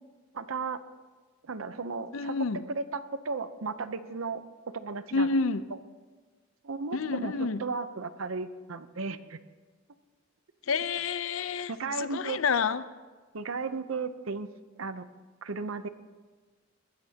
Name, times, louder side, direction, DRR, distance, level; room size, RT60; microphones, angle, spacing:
voice 1, 0.3-0.8 1.4-2.4 2.6-5.3 6.6-9.4 11.7-12.4 13.3-14.5 14.8-15.1 15.4-15.9, right 4 dB, 85° right, 12 dB, 0.7 m, -35 dB
voice 2, 2.1-2.6 5.1-5.6 6.9-7.6 10.7-11.7 12.0-12.8, left 4 dB, 80° left, 14 dB, 0.6 m, -28 dB
21.5 x 15.5 x 2.9 m, 1.4 s
head